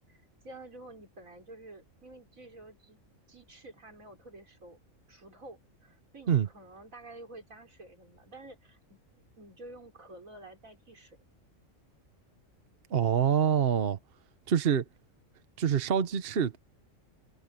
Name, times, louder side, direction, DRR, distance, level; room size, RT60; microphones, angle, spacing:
voice 1, 0.1-3.0 3.3-4.8 5.1-9.0 9.4-11.2, right 2 dB, 85° right, 5.0 m, -50 dB
voice 2, 12.9-14.0 14.5-14.8 15.6-16.6, right 8 dB, 50° right, 1.1 m, -25 dB
omnidirectional pair, 1.4 m